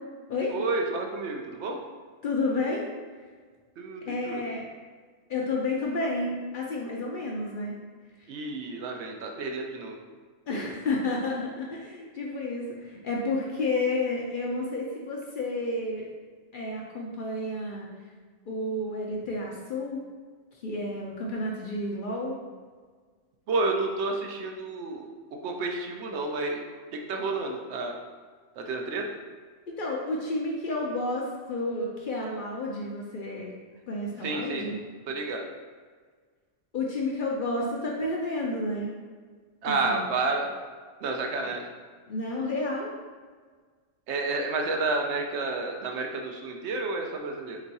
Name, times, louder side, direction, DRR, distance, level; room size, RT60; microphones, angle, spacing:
voice 1, 0.5-1.8 3.8-4.4 8.3-10.0 23.5-25.1 25.4-26.6 26.9-27.9 28.6-29.1 34.2-34.6 35.1-35.4 39.6-40.5 41.0-41.6 44.1-47.6, right 3 dB, 70° right, 2 dB, 0.8 m, -30 dB
voice 2, 2.2-2.9 4.1-4.7 5.3-7.8 10.5-16.1 16.5-17.9 18.5-20.0 20.6-22.3 29.7-33.5 33.9-34.8 36.7-38.9 39.8-40.0 42.1-42.9, left 2 dB, 55° left, -2 dB, 0.6 m, -31 dB
3.5 x 3.0 x 4.0 m, 1.5 s
omnidirectional pair, 1.2 m